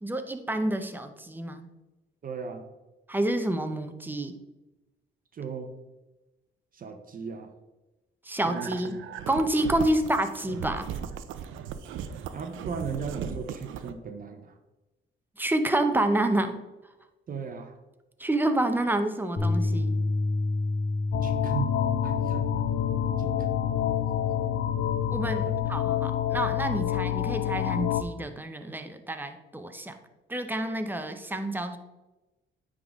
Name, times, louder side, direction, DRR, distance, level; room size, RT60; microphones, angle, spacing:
voice 1, 0.0-1.7 3.1-4.3 8.2-8.9 9.3-10.9 15.4-16.6 18.2-19.9 25.1-30.0 30.3-31.8, right 1 dB, 10° right, 7 dB, 0.7 m, -28 dB
voice 2, 2.2-2.7 5.3-5.7 6.7-7.5 8.4-9.0 12.3-14.6 17.3-17.8 21.2-21.7 22.0-22.7 23.2-23.5 25.4-25.7, right 6 dB, 45° right, 6 dB, 0.8 m, -37 dB
sound 1, 8.4-13.9, right 8 dB, 80° right, 0.5 m, -37 dB
Bass guitar, 19.4-25.6, left 2 dB, 40° left, 1.1 m, -30 dB
sound 2, 21.1-28.0, left 12 dB, 75° left, 0.5 m, -28 dB
9.3 x 3.7 x 3.6 m, 1.1 s
cardioid pair, 90°, 20 cm